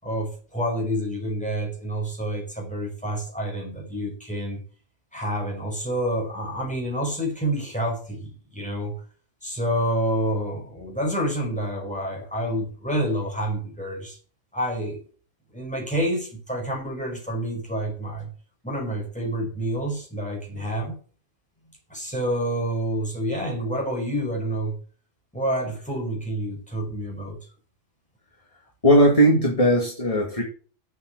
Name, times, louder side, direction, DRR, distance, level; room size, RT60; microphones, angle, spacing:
voice 1, 0.0-4.6 5.1-8.9 9.4-14.2 14.5-15.0 15.5-18.3 18.6-21.0 21.9-24.8 25.3-27.4, right 1 dB, 5° left, -1 dB, 5.3 m, -28 dB
voice 2, 28.8-30.4, equal, 30° left, 0 dB, 2.3 m, -18 dB
8.0 x 7.8 x 8.3 m, 0.41 s
omnidirectional pair, 1.2 m